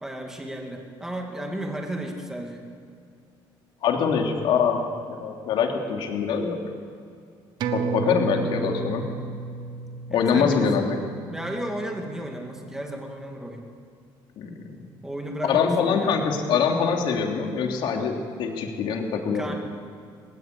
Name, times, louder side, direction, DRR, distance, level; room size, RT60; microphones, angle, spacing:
voice 1, 0.0-2.6 8.0-8.5 10.1-10.7 11.3-13.6 15.0-16.1 19.3-19.5, right 1 dB, 5° right, 1 dB, 2.3 m, -34 dB
voice 2, 3.8-6.6 7.7-9.1 10.1-10.9 14.4-14.5 15.4-19.5, left 6 dB, 65° left, 2 dB, 3.1 m, -24 dB
sound 1, 7.6-12.5 12.9-13.0, right 5 dB, 55° right, 1.5 m, -32 dB
19.5 x 19.5 x 8.4 m, 2.3 s
cardioid pair, 140°, 9 cm